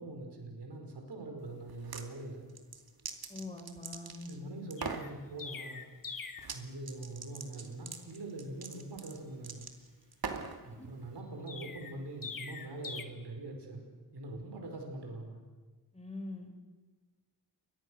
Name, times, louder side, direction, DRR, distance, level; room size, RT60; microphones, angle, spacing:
voice 1, 0.0-2.5 4.2-5.9 6.5-9.7 10.6-13.8 14.1-15.4, right 2 dB, 85° right, 2 dB, 5.4 m, -43 dB
sound 1, 1.7-2.1 2.5-4.4 4.7-5.1 6.4-6.6 6.9-10.6, right 5 dB, 65° right, 2.5 m, -42 dB
voice 2, 3.3-4.5 10.6-10.8 15.9-16.5, left 2 dB, 15° left, 4 dB, 4.5 m, -44 dB
Chirp tweet, 4.8-6.6 11.5-13.0, left 5 dB, 55° left, 1.9 m, -43 dB
29.5 x 23.5 x 6.5 m, 1.4 s
wide cardioid pair, 100°, 39 cm